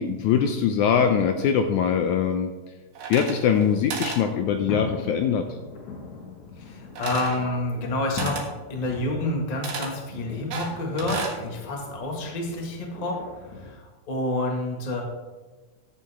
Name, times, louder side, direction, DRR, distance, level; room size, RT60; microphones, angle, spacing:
voice 1, 0.0-2.5 3.1-5.6, left 7 dB, 80° left, 6 dB, 1.8 m, -22 dB
sound 1, 2.9-3.6 3.9-4.2 7.0-7.4 8.2-8.5 9.6-9.9 10.5-11.4, right 5 dB, 70° right, 3.2 m, -33 dB
sound 2, 4.3-13.7, left 4 dB, 60° left, 2.8 m, -39 dB
voice 2, 6.6-8.3 8.7-13.2 13.6-13.7 14.1-15.0, left 2 dB, 25° left, 0 dB, 0.8 m, -28 dB
14.0 x 8.4 x 3.6 m, 1.2 s
omnidirectional pair, 3.9 m